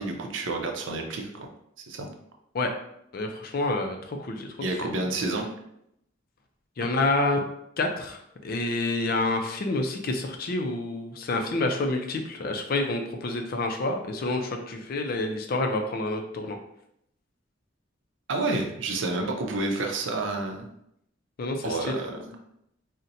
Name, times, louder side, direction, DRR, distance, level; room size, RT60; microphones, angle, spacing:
voice 1, 0.0-1.5 1.9-2.1 4.6-5.5 18.3-20.7 21.6-22.4, right 2 dB, 80° right, 2 dB, 0.6 m, -29 dB
voice 2, 3.1-4.6 6.8-7.4 7.8-16.6 21.4-22.0, left 2 dB, 50° left, 4 dB, 0.4 m, -28 dB
4.0 x 2.1 x 2.6 m, 0.76 s
head